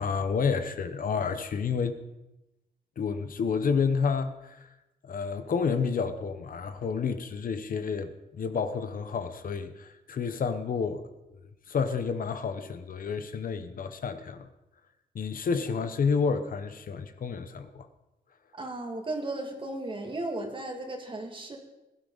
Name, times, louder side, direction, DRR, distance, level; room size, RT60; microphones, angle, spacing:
voice 1, 0.0-2.0 3.0-4.7 5.0-11.0 11.3-11.4 11.7-14.5 15.1-17.9, left 5 dB, 60° left, 0.9 m, -30 dB
voice 2, 18.5-21.6, right 2 dB, 30° right, 2.3 m, -35 dB
20.5 x 12.0 x 4.0 m
wide cardioid pair, 140°, 17 cm